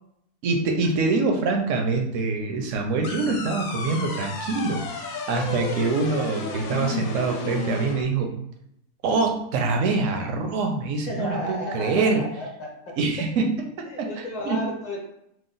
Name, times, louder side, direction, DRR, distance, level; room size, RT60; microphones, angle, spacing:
voice 1, 0.4-4.8 5.3-8.3 9.0-12.2 13.0-13.5 14.0-14.6, right 4 dB, 70° right, 2 dB, 0.9 m, -24 dB
sound 1, 3.0-8.0, left 5 dB, 75° left, 1.0 m, -32 dB
voice 2, 11.1-12.7 13.9-15.0, left 1 dB, 35° left, -2 dB, 0.8 m, -32 dB
3.0 x 2.0 x 3.8 m, 0.75 s
omnidirectional pair, 1.5 m